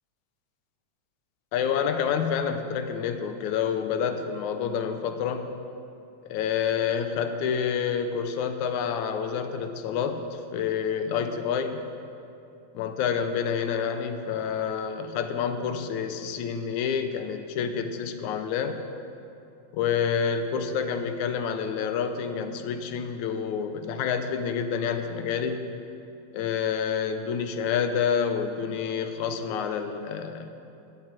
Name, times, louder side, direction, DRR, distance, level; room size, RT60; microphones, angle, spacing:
voice 1, 1.5-5.5 6.2-11.9 12.7-18.8 19.7-25.7 26.3-30.5, left 7 dB, 85° left, 8 dB, 2.2 m, -28 dB
11.0 x 8.5 x 7.8 m, 2.7 s
omnidirectional pair, 3.3 m